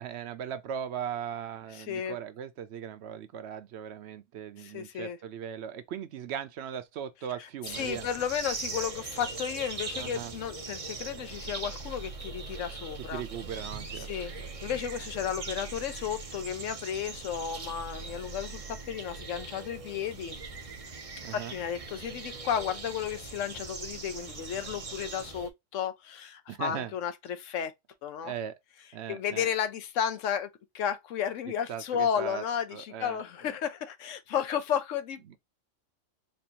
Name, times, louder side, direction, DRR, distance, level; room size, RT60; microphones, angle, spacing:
voice 1, 0.0-8.1 10.0-10.3 13.0-14.1 14.4-14.7 21.2-21.5 26.5-26.9 28.2-28.5 28.9-29.5 31.7-32.4 32.7-33.6 35.3-35.4, right 9 dB, 65° right, 0.8 m, -38 dB
voice 2, 1.7-2.2 4.6-5.2 7.4-13.2 14.0-14.3 14.6-20.4 21.3-27.7 28.0-28.3 29.1-35.4, left 8 dB, 85° left, 1.0 m, -33 dB
sound 1, 7.6-25.5, right 4 dB, 35° right, 0.7 m, -40 dB
4.3 x 2.5 x 2.8 m
omnidirectional pair, 1.3 m